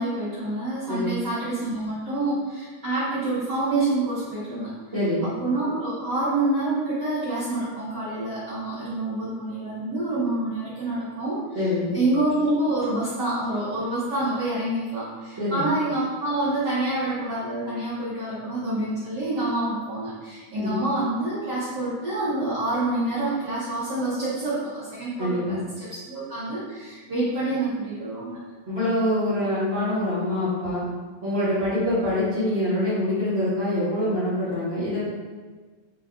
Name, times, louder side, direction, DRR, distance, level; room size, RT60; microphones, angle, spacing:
voice 1, 0.0-4.7 5.2-11.7 11.9-28.4, right 2 dB, 85° right, -12 dB, 0.9 m, -27 dB
voice 2, 4.9-5.3 11.5-11.9 15.4-15.7 20.5-20.8 25.2-25.6 28.7-30.8 31.2-35.0, left 1 dB, 50° right, -13 dB, 0.7 m, -25 dB
4.8 x 2.3 x 3.6 m, 1.4 s
omnidirectional pair, 3.4 m